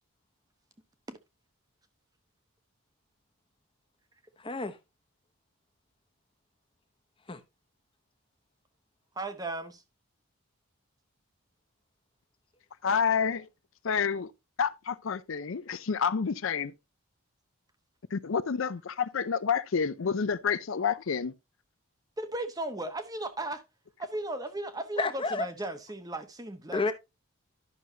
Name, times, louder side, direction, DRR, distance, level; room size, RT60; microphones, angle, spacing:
voice 1, 4.4-4.8 7.3-7.4 25.0-25.5 26.7-26.9, left 3 dB, 25° left, 0.8 m, -30 dB
voice 2, 9.2-9.8 22.2-23.6 24.0-26.8, right 2 dB, 15° right, 0.8 m, -36 dB
voice 3, 12.8-13.5 13.8-14.3 14.6-16.7 18.1-21.3, left 6 dB, 65° left, 0.5 m, -29 dB
11.0 x 6.2 x 2.7 m
head